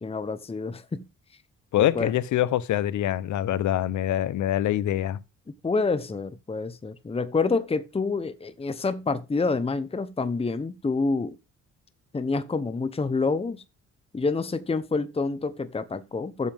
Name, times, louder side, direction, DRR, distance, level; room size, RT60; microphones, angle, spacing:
voice 1, 0.0-1.1 1.8-2.1 5.6-11.4 12.1-13.6 14.1-16.5, left 4 dB, 20° left, 1.0 m, -27 dB
voice 2, 1.7-5.2, left 12 dB, 75° left, 0.9 m, -25 dB
14.0 x 7.7 x 3.6 m
cardioid pair, 90°, 30 cm